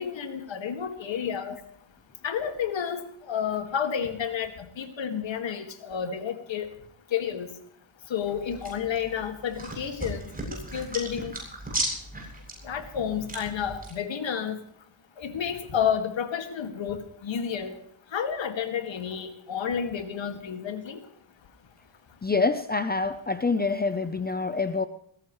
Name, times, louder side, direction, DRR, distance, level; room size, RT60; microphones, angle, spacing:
voice 1, 0.0-1.6 2.2-6.7 7.1-7.5 8.1-10.2 10.5-11.3 12.6-14.6 15.2-17.8 18.1-21.0, left 8 dB, 65° left, 7 dB, 2.2 m, -30 dB
sound 1, 8.2-13.9, right 2 dB, 15° right, 7.7 m, -36 dB
voice 2, 22.2-24.9, left 4 dB, 20° left, 11 dB, 0.7 m, -26 dB
21.0 x 16.5 x 3.2 m, 0.65 s
cardioid pair, 110°, 49 cm